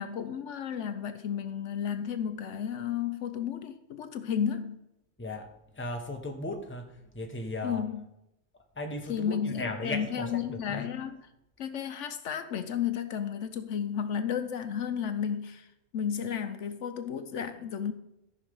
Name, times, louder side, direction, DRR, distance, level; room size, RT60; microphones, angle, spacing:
voice 1, 0.0-4.8 7.6-8.0 9.1-11.2 11.6-15.7 15.9-17.9, left 8 dB, 70° left, 1.0 m, -33 dB
voice 2, 5.2-7.8 8.8-10.9, left 2 dB, 10° left, 1.0 m, -37 dB
13.5 x 5.6 x 5.3 m
omnidirectional pair, 1.3 m